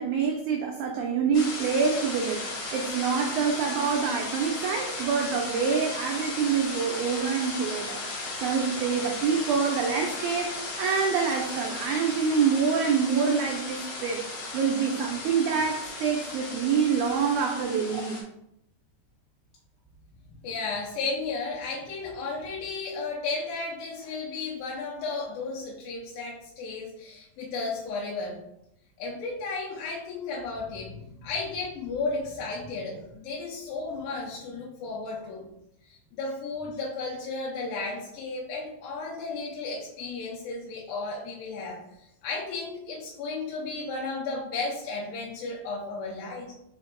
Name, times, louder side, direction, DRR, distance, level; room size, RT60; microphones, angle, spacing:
voice 1, 0.0-8.0 8.4-14.2 14.5-18.2, right 6 dB, 85° right, 1 dB, 1.7 m, -26 dB
sound 1, 1.3-18.2, left 2 dB, 60° left, 2.2 m, -36 dB
voice 2, 20.4-28.4 29.0-35.4 35.8-41.8 42.2-46.5, left 3 dB, 85° left, -3 dB, 2.5 m, -34 dB
4.6 x 4.3 x 2.5 m, 0.79 s
omnidirectional pair, 4.0 m